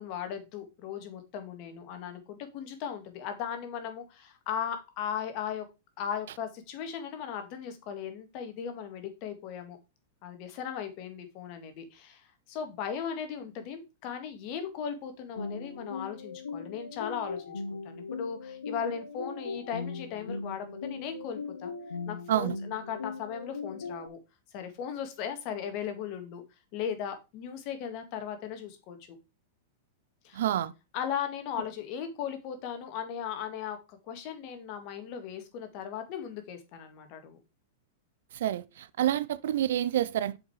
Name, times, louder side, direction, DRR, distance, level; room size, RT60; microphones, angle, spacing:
voice 1, 0.0-5.6 6.0-9.8 10.2-21.7 22.1-24.2 24.5-26.4 26.7-29.0 30.2-30.4 30.9-37.4, left 8 dB, 50° left, 2.0 m, -37 dB
sound 1, 15.4-24.1, left 4 dB, 85° left, 0.9 m, -39 dB
voice 2, 30.3-30.7 38.3-40.4, right 11 dB, 65° right, 0.6 m, -28 dB
7.0 x 5.3 x 4.8 m
hypercardioid pair, 105°, 0 cm